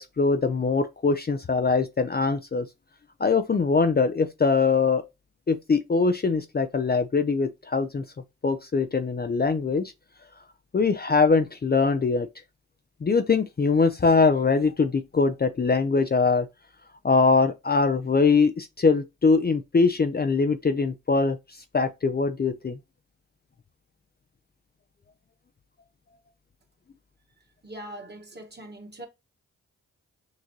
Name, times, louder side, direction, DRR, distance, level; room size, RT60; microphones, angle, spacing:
voice 1, 0.0-2.7 3.2-5.0 5.5-8.0 8.4-9.9 10.7-12.3 13.0-16.5 17.0-21.4 21.7-22.8, left 4 dB, 30° left, 0.6 m, -22 dB
voice 2, 27.6-29.1, right 1 dB, 35° right, 1.7 m, -41 dB
6.5 x 2.5 x 3.0 m
supercardioid pair, 40°, 32 cm